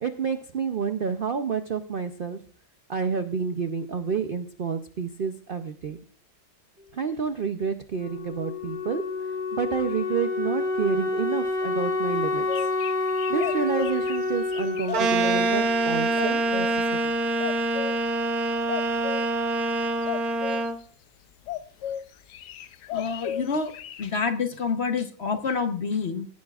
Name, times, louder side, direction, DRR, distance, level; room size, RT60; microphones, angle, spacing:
voice 1, 0.0-2.4 2.9-6.0 6.9-12.7 13.3-17.1, right 6 dB, 85° right, 8 dB, 0.4 m, -29 dB
Wind instrument woodwind instrument, 8.0-16.6, left 3 dB, 5° right, 3.0 m, -29 dB
sound 1, 12.2-15.4 16.2-16.8 17.4-18.0 18.7-19.2 20.0-20.7 21.5-22.0 22.3-24.1, left 11 dB, 80° left, 1.3 m, -34 dB
sound 2, 14.9-20.8, right 2 dB, 60° right, 1.6 m, -25 dB
voice 2, 22.9-23.7 24.0-26.3, left 5 dB, 45° left, 7 dB, 1.0 m, -27 dB
16.5 x 10.5 x 2.4 m, 0.43 s
omnidirectional pair, 1.8 m